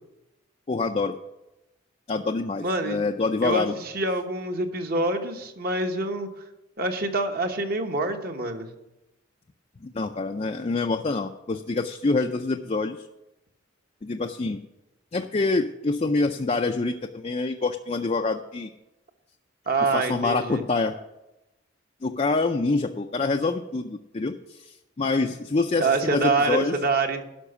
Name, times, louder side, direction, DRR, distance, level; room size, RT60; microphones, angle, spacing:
voice 1, 0.7-1.2 2.1-3.7 9.8-13.1 14.0-14.6 15.1-18.7 19.9-21.0 22.0-26.8, left 3 dB, 30° left, 4 dB, 0.4 m, -26 dB
voice 2, 2.6-3.0 3.4-6.3 6.8-8.7 19.7-20.6 25.8-27.2, right 3 dB, 50° right, 5 dB, 1.1 m, -26 dB
12.0 x 5.9 x 7.0 m, 0.94 s
head